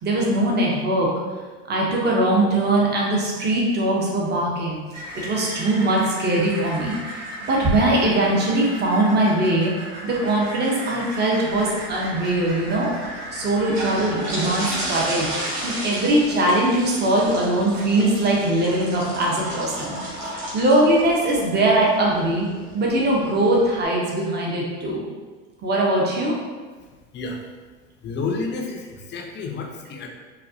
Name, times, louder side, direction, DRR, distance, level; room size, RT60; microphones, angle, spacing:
voice 1, 0.0-1.1 1.7-4.8 5.1-7.2 7.5-9.7 10.0-15.3 15.6-22.5 22.7-25.0 25.6-26.3, right 1 dB, 25° right, -3 dB, 0.8 m, -21 dB
sound 1, 4.9-15.0, right 1 dB, 85° right, 1.2 m, -36 dB
sound 2, 11.5-23.8, right 1 dB, 55° right, 1.3 m, -33 dB
voice 2, 28.0-30.1, left 4 dB, 30° left, 1 dB, 0.5 m, -30 dB
4.0 x 2.3 x 2.7 m, 1.4 s
hypercardioid pair, 100°, 37 cm